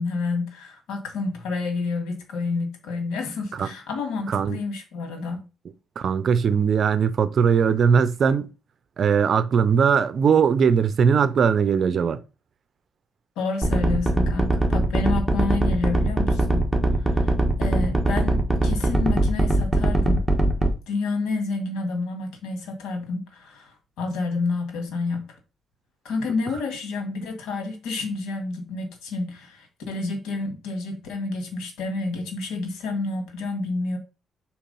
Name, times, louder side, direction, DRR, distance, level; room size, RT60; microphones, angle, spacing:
voice 1, 0.0-5.5 13.4-16.7 17.0-20.2 20.9-25.3 26.0-34.0, left 3 dB, 85° left, 1.8 m, -29 dB
voice 2, 4.3-4.6 6.0-8.5 9.0-12.2, right 6 dB, 55° right, 0.6 m, -20 dB
sound 1, 13.6-20.7, right 1 dB, 10° right, 1.4 m, -21 dB
4.7 x 4.2 x 5.4 m
cardioid pair, 90°, 0 cm